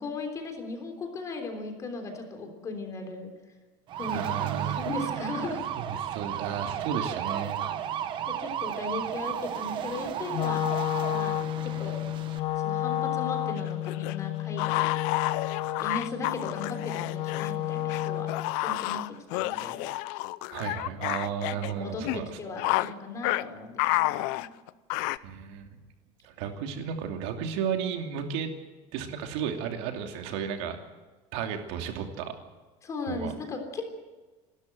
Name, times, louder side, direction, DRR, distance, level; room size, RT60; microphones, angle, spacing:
voice 1, 0.0-3.3 3.9-5.6 8.3-10.6 11.1-12.0 12.6-14.9 15.8-18.3 18.6-19.9 21.7-24.5 32.8-33.9, left 3 dB, 25° left, 5 dB, 3.5 m, -37 dB
sound 1, 3.9-12.4, right 10 dB, 35° right, 1.1 m, -33 dB
voice 2, 4.1-4.8 5.8-7.6 20.5-22.4 25.2-25.7 26.2-28.5 28.9-30.8 31.3-32.3 33.1-33.3, right 8 dB, 75° right, 4 dB, 2.8 m, -33 dB
Wind instrument woodwind instrument, 10.3-18.5, left 13 dB, 45° left, 1.3 m, -31 dB
sound 2, 13.6-17.5 17.9-21.7 22.0-22.2 22.6-22.9 23.2-23.4 23.8-25.2, left 19 dB, 65° left, 0.7 m, -30 dB
28.0 x 13.0 x 7.8 m, 1.3 s
cardioid pair, 175°, 14 cm